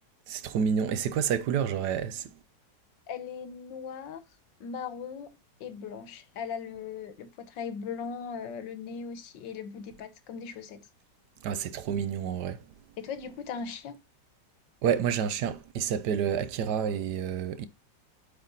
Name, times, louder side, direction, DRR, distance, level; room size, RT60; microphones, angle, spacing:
voice 1, 0.3-2.3 11.4-12.6 14.8-17.7, right 8 dB, 70° right, 1.3 m, -29 dB
voice 2, 3.1-4.2 4.6-10.9 13.0-14.0, left 6 dB, 80° left, 1.7 m, -39 dB
8.4 x 4.5 x 3.9 m
omnidirectional pair, 1.9 m